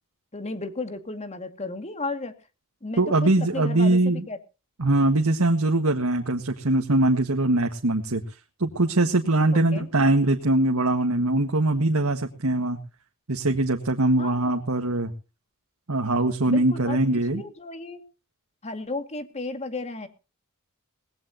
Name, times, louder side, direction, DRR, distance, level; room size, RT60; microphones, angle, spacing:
voice 1, 0.3-2.3 2.8-4.4 9.5-9.9 14.2-14.5 16.5-17.0 17.3-18.0 18.6-20.1, left 2 dB, 30° left, 8 dB, 2.2 m, -34 dB
voice 2, 3.0-4.2 4.8-8.2 8.6-12.8 13.3-15.1 15.9-17.4, right 2 dB, 85° right, 4 dB, 1.7 m, -22 dB
19.5 x 16.0 x 2.9 m, 0.33 s
head